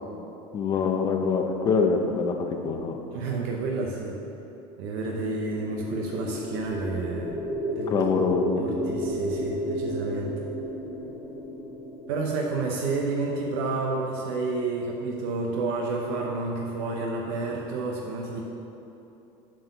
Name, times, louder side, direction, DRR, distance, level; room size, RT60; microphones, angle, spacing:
voice 1, 0.5-3.0 7.9-8.6, left 5 dB, 30° left, 4 dB, 0.7 m, -25 dB
voice 2, 3.1-4.2 4.8-7.4 7.7-8.0 8.6-10.5 12.1-18.4, right 3 dB, 75° right, -1 dB, 0.9 m, -30 dB
sound 1, 5.2-13.3, equal, 75° left, 1.8 m, -33 dB
7.7 x 4.5 x 6.7 m, 3.0 s
supercardioid pair, 135°, 12 cm